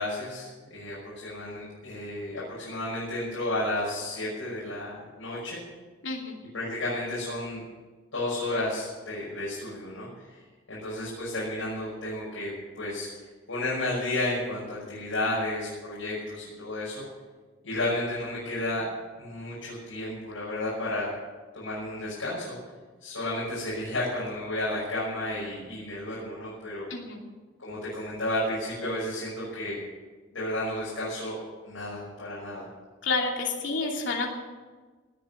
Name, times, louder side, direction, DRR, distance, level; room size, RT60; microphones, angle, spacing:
voice 1, 0.0-5.6 6.5-7.6 8.1-10.4 10.7-13.1 13.5-17.0 17.6-18.9 19.2-21.1 21.5-22.5 23.0-26.9 27.6-29.8 30.3-31.4 31.6-32.7, left 1 dB, 85° left, -7 dB, 5.8 m, -32 dB
voice 2, 6.0-6.4 26.9-27.2 33.0-34.3, left 3 dB, 65° left, 0 dB, 2.9 m, -29 dB
18.5 x 8.4 x 7.8 m, 1.4 s
head